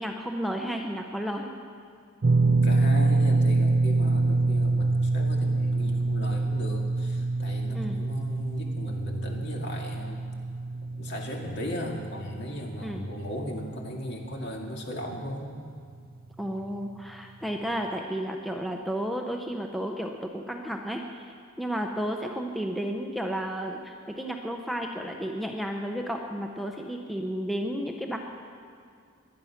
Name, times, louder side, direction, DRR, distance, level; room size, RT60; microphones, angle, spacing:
voice 1, 0.0-1.5 7.7-8.0 12.8-13.1 16.4-21.0 21.6-28.2, equal, ahead, 2 dB, 0.7 m, -32 dB
sound 1, 2.2-14.5 14.7-15.0 16.6-16.7, right 3 dB, 45° right, 0.4 m, -26 dB
voice 2, 2.4-10.2 10.9-15.6, left 1 dB, 55° left, 1 dB, 2.1 m, -36 dB
22.5 x 9.5 x 5.8 m, 2.3 s
head